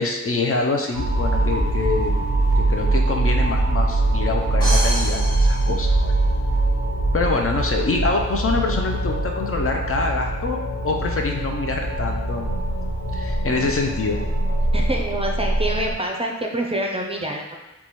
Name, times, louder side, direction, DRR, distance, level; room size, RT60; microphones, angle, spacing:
voice 1, 0.0-2.1 2.6-6.2 7.1-10.6 10.8-12.5 13.1-14.2, left 3 dB, 50° left, 2 dB, 0.5 m, -25 dB
sound 1, 0.9-15.9, right 2 dB, 85° left, 0.7 m, -22 dB
sound 2, 4.6-6.6, equal, 15° left, 1.3 m, -29 dB
voice 2, 14.7-17.5, right 1 dB, 20° right, 1 dB, 0.5 m, -26 dB
3.0 x 2.3 x 4.1 m, 1.1 s
wide cardioid pair, 55°, 29 cm